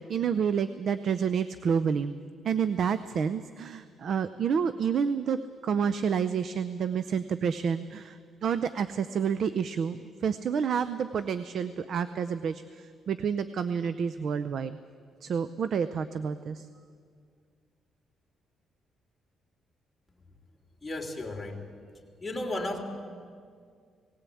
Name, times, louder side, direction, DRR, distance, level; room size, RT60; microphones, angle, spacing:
voice 1, 0.0-2.1 2.4-14.8 15.2-16.7, right 7 dB, 60° right, 13 dB, 0.6 m, -29 dB
voice 2, 20.8-21.6 22.2-22.8, left 1 dB, 15° left, 0 dB, 3.1 m, -34 dB
19.0 x 17.0 x 8.5 m, 2.1 s
cardioid pair, 90°, 0 cm